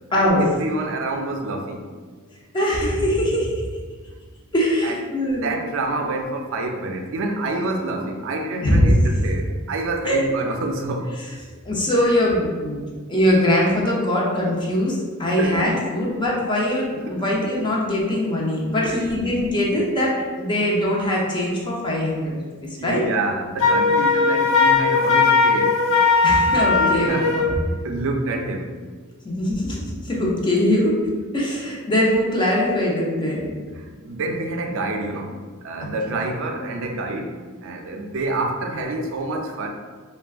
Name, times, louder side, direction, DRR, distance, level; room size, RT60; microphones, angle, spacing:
voice 1, 0.1-1.9 4.8-11.1 15.4-15.8 17.1-17.2 18.8-19.1 22.8-25.7 26.3-26.4 26.8-28.7 33.7-37.3 37.6-39.7, right 2 dB, 65° right, 4 dB, 0.4 m, -27 dB
voice 2, 2.5-3.6 4.5-5.6 8.6-8.9 10.1-10.2 11.6-12.8 13.1-22.4 22.8-23.0 26.2-27.6 29.2-29.8 30.0-30.9 31.3-33.5, left 1 dB, 20° left, -4 dB, 0.5 m, -21 dB
Wind instrument woodwind instrument, 23.6-27.5, left 4 dB, 85° left, 0.5 m, -18 dB
3.6 x 2.2 x 2.3 m, 1.5 s
head